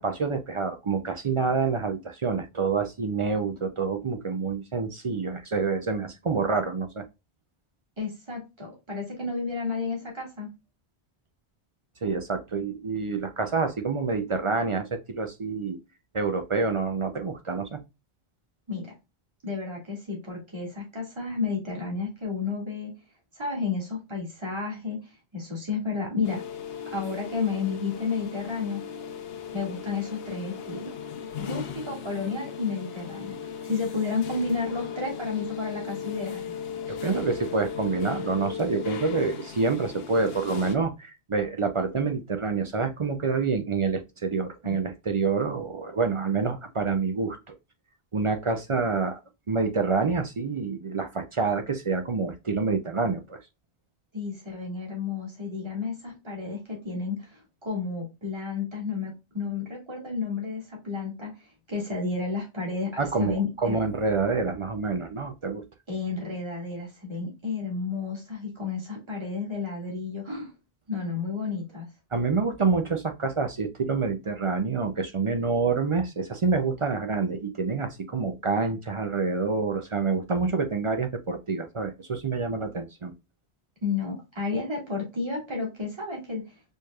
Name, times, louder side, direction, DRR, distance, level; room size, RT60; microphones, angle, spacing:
voice 1, 0.0-7.0 12.0-15.8 16.1-17.8 36.9-47.6 48.1-49.2 49.5-53.4 63.0-65.6 72.1-83.1, right 4 dB, 45° right, 7 dB, 0.4 m, -27 dB
voice 2, 8.0-10.5 18.7-18.9 19.4-22.9 23.4-26.4 26.9-28.8 29.5-31.0 31.4-33.4 33.6-36.4 44.6-44.8 54.1-61.3 61.7-63.8 65.9-70.5 70.9-71.9 83.8-86.5, left 4 dB, 25° right, -2 dB, 1.8 m, -31 dB
sound 1, 26.2-40.8, left 7 dB, 70° left, 0.9 m, -37 dB
4.4 x 3.2 x 2.2 m, 0.25 s
omnidirectional pair, 1.1 m